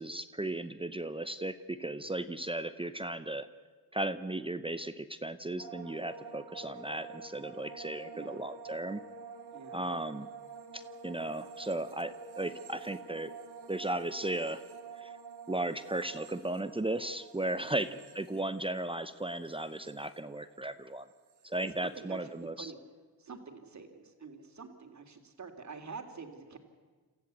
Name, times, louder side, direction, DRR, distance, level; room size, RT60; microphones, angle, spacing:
voice 1, 0.0-3.5 3.9-9.0 9.7-10.3 10.7-13.3 13.7-14.6 15.0-15.1 15.5-21.1 21.4-22.7, right 1 dB, 15° right, 12 dB, 0.8 m, -36 dB
sound 1, 5.6-20.8 21.1-21.7, right 5 dB, 85° right, 2.2 m, -48 dB
voice 2, 9.5-9.8 17.7-17.9 21.6-22.8 23.2-26.6, right 5 dB, 45° right, 6 dB, 2.7 m, -47 dB
28.0 x 14.5 x 8.2 m, 1.4 s
cardioid pair, 100°, 38 cm